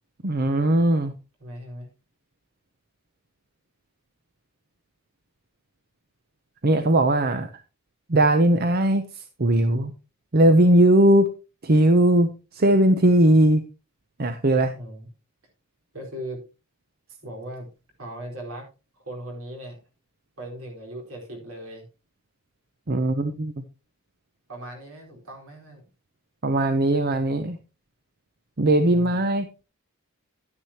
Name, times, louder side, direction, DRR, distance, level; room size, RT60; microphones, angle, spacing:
voice 1, 0.2-1.1 6.6-7.5 8.1-9.9 10.3-11.3 11.6-13.6 14.2-14.7 22.9-23.5 26.4-27.6 28.6-29.5, right 1 dB, 45° right, 9 dB, 0.8 m, -19 dB
voice 2, 1.4-1.9 14.7-15.1 15.9-16.4 17.2-17.7 18.0-18.7 19.0-19.8 20.4-21.9 24.5-25.9 28.7-29.2, right 1 dB, 70° right, 0 dB, 4.4 m, -38 dB
12.0 x 9.8 x 2.9 m, 0.31 s
head